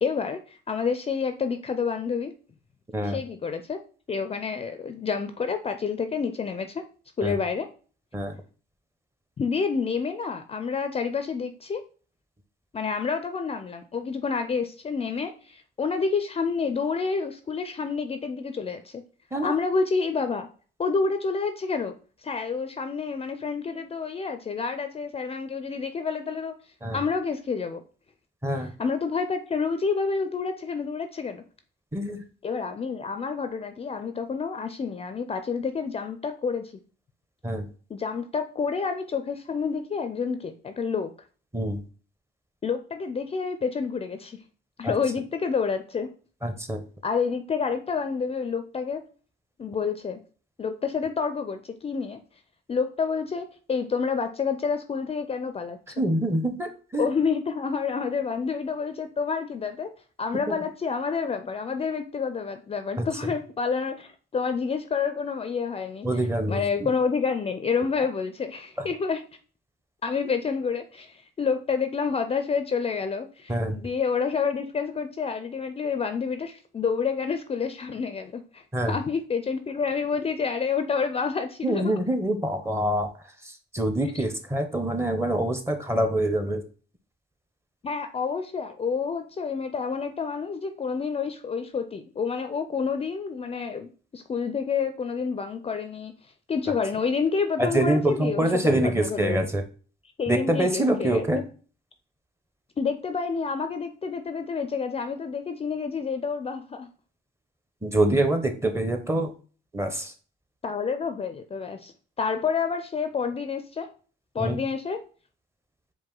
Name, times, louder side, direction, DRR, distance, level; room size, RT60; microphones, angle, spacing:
voice 1, 0.0-2.3 3.0-3.8 4.1-6.8 7.2-7.7 9.4-11.8 12.7-19.0 19.4-20.5 20.8-21.9 22.2-26.5 26.9-27.8 28.8-31.4 32.4-36.7 37.9-41.1 42.6-44.4 44.8-46.1 47.0-49.0 49.6-50.2 50.6-52.2 52.7-55.8 57.0-59.9 60.2-66.1 66.5-69.2 70.0-81.8 84.1-84.2 87.8-96.1 96.5-99.4 100.2-101.2 102.8-106.9 110.6-111.9 112.2-113.9 114.3-115.0, left 5 dB, 30° left, 9 dB, 0.4 m, -28 dB
voice 2, 28.4-28.7 31.9-32.2 37.4-37.7 41.5-41.8 44.8-44.9 46.4-46.8 56.0-57.1 60.5-60.6 63.0-63.1 66.0-66.9 73.5-73.8 78.7-79.0 81.6-83.1 83.4-86.6 97.6-99.6 100.3-101.4 107.8-109.3 109.7-110.1 114.4-114.6, right 1 dB, 15° right, 7 dB, 0.7 m, -25 dB
4.7 x 2.6 x 3.8 m, 0.39 s
cardioid pair, 90°, 20 cm